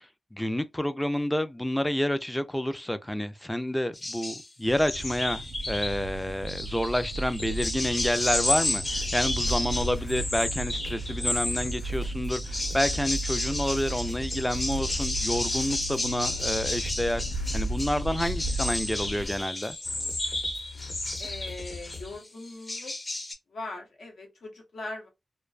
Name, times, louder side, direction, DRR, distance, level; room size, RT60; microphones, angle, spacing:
voice 1, 0.3-17.2 17.5-19.8, left 1 dB, 10° left, 0.3 m, -29 dB
sound 1, 3.9-4.5 4.8-6.1 6.5-11.8 12.3-22.1 22.5-23.3, left 1 dB, 35° left, 0.7 m, -32 dB
sound 2, 4.6-19.2, right 2 dB, 70° right, 0.4 m, -35 dB
sound 3, 7.4-22.2, left 3 dB, 65° left, 0.9 m, -42 dB
voice 2, 21.2-22.9 23.5-25.1, left 2 dB, 85° left, 0.9 m, -40 dB
2.5 x 2.1 x 2.3 m
wide cardioid pair, 80°, 0 cm